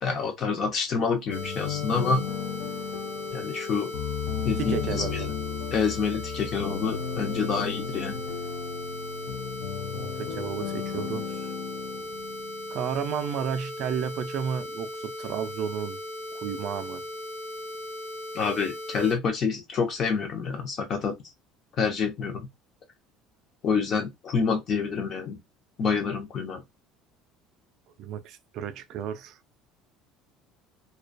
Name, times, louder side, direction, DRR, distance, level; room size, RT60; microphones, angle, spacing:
voice 1, 0.0-2.2 3.3-3.9 4.4-5.2 5.7-8.2 18.3-21.1 21.8-22.5 23.6-25.4 25.8-26.6, left 5 dB, 30° left, 0.6 m, -27 dB
sound 1, 1.3-13.0, left 8 dB, 75° left, 0.4 m, -35 dB
sound 2, 1.3-19.1, left 1 dB, 45° left, 0.9 m, -38 dB
voice 2, 4.6-5.3 10.0-11.5 12.7-16.0 16.3-17.0 28.0-29.4, right 8 dB, 45° right, 0.3 m, -32 dB
2.2 x 2.2 x 2.5 m
cardioid pair, 175°, 0 cm